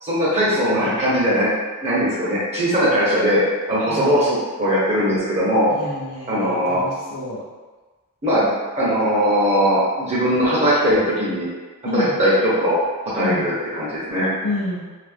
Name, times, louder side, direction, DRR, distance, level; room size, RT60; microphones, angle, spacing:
voice 1, 0.0-1.5 1.8-3.4 3.7-5.7 6.3-6.8 8.2-8.5 8.8-11.5 11.9-12.3 12.6-12.8 13.1-14.3, equal, 30° right, -9 dB, 0.9 m, -19 dB
voice 2, 3.9-4.2 5.7-7.4 11.8-12.2 13.2-13.5 14.4-14.8, left 1 dB, 65° left, -5 dB, 0.6 m, -29 dB
2.8 x 2.5 x 3.4 m, 1.3 s
head